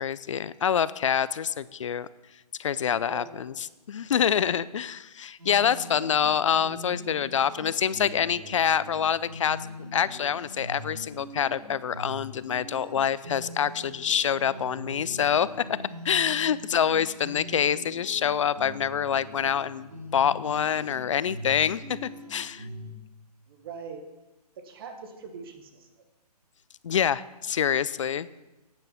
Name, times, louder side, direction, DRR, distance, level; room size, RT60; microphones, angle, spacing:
voice 1, 0.0-2.1 2.6-9.6 9.9-15.5 16.0-22.7 26.8-28.3, left 8 dB, 50° left, 18 dB, 0.4 m, -26 dB
voice 2, 3.0-3.4 23.5-24.0 24.6-25.9, right 6 dB, 35° right, 6 dB, 1.4 m, -42 dB
sound 1, 5.4-22.9, left 1 dB, 85° right, 4.3 m, -42 dB
9.3 x 9.3 x 5.4 m, 1.1 s
hypercardioid pair, 150°, 21 cm